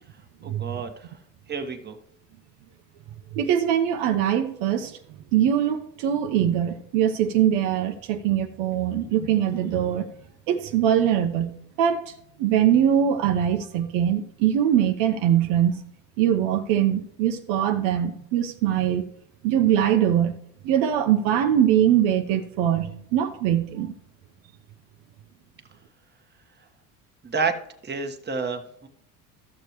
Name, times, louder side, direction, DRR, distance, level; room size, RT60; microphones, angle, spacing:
voice 1, 0.4-1.2 1.5-2.0 27.2-27.6 27.8-28.9, right 4 dB, 20° right, 1.4 m, -29 dB
voice 2, 3.3-5.0 5.3-10.1 10.5-11.5 11.8-12.1 12.4-15.8 16.2-19.0 19.4-20.3 20.6-23.9, right 10 dB, 70° right, 1.0 m, -22 dB
14.0 x 6.7 x 3.1 m
supercardioid pair, 85°, 47 cm